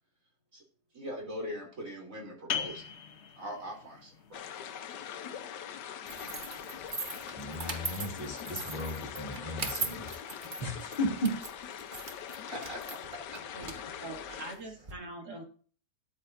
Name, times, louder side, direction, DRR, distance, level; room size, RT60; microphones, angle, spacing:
voice 1, 0.9-2.9 3.4-4.4 12.5-13.4, equal, 50° right, 0 dB, 3.5 m, -41 dB
sound 1, 2.5-7.9, left 7 dB, 50° left, 1.0 m, -42 dB
sound 2, 4.3-14.6, left 8 dB, 90° left, 1.4 m, -42 dB
sound 3, 6.1-14.9, right 3 dB, 30° right, 1.3 m, -41 dB
voice 2, 7.4-10.1 10.6-11.4, equal, 30° left, -3 dB, 2.9 m, -35 dB
voice 3, 14.0-15.4, right 2 dB, 70° right, 1 dB, 3.0 m, -43 dB
13.0 x 10.0 x 2.6 m, 0.42 s
omnidirectional pair, 1.8 m